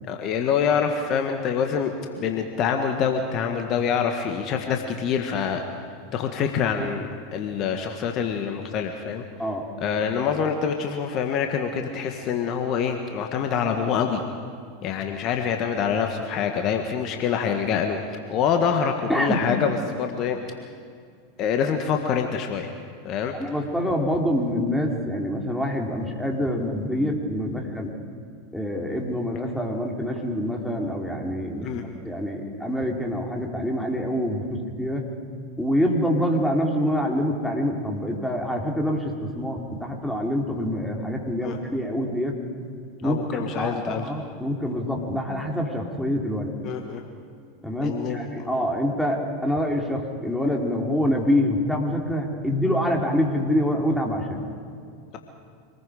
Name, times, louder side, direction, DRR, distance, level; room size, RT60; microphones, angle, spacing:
voice 1, 0.1-5.6 6.1-9.2 9.8-14.2 14.8-18.0 18.3-20.4 21.4-22.7 23.0-23.3 31.6-31.8 41.4-41.6 43.0-44.1 46.6-47.0 47.8-48.5, left 7 dB, 45° left, 4 dB, 1.7 m, -26 dB
voice 2, 23.4-27.9 28.5-31.7 32.0-35.0 35.6-42.4 43.0-46.5 47.6-54.4, equal, ahead, 0 dB, 3.5 m, -26 dB
26.0 x 20.5 x 5.1 m, 2.3 s
figure-of-eight pair, 90°, 0 cm